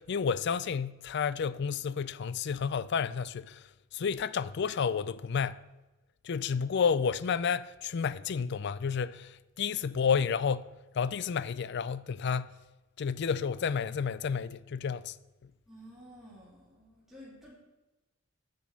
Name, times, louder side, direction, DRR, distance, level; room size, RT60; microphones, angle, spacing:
voice 1, 0.0-3.7 3.9-5.6 6.2-12.5 13.0-15.2 15.4-15.5, left 6 dB, 55° left, 0.4 m, -31 dB
voice 2, 15.7-17.5, equal, ahead, 2.7 m, -52 dB
9.3 x 6.2 x 7.5 m
head